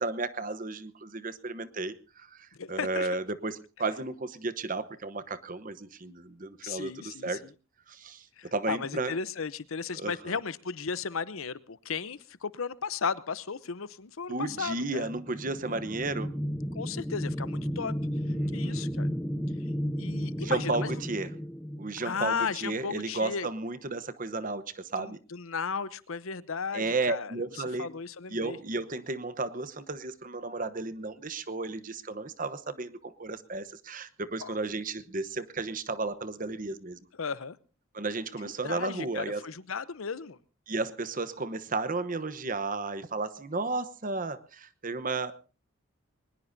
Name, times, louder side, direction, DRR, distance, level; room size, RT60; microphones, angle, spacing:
voice 1, 0.0-7.4 7.9-9.1 9.9-10.4 14.3-16.3 18.3-18.9 20.4-21.3 21.8-25.2 26.7-27.9 28.3-37.0 37.9-39.4 40.7-45.3, right 3 dB, 40° right, 13 dB, 1.0 m, -33 dB
voice 2, 2.5-3.1 6.6-7.4 8.4-15.1 15.7-15.8 16.7-17.9 18.3-19.1 20.0-20.9 22.0-23.5 25.0-27.4 27.8-28.6 34.4-34.6 37.2-37.6 38.4-40.4, left 5 dB, 75° left, 17 dB, 0.8 m, -35 dB
sound 1, 14.9-22.5, equal, 5° left, 0.8 m, -33 dB
21.5 x 20.0 x 2.7 m, 0.33 s
head